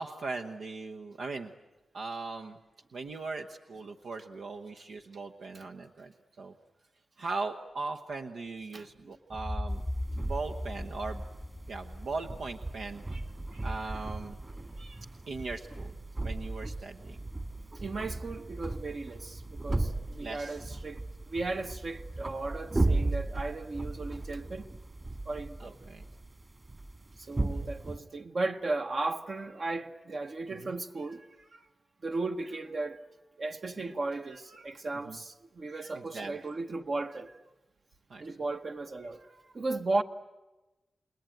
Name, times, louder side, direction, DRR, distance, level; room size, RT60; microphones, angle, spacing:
voice 1, 0.0-1.5 1.9-2.6 2.9-6.5 7.2-9.8 10.1-11.2 11.7-14.4 14.8-15.9 16.2-17.2 20.2-20.6 25.6-26.0 30.6-30.8 31.2-31.3 31.5-31.7 33.8-33.9 34.5-34.7 35.1-35.2 35.7-36.4 38.1-38.3 39.2-39.5, right 3 dB, 85° right, 1.0 m, -39 dB
voice 2, 8.7-9.2 17.7-24.7 25.3-25.7 27.2-31.2 32.0-33.0 33.4-37.3 38.2-39.2 39.5-40.0, right 3 dB, 55° right, 1.0 m, -35 dB
sound 1, 9.3-13.2, left 1 dB, 5° left, 0.8 m, -38 dB
sound 2, 9.7-28.0, right 2 dB, 30° right, 2.0 m, -36 dB
29.0 x 20.5 x 9.2 m
wide cardioid pair, 90°, 0 cm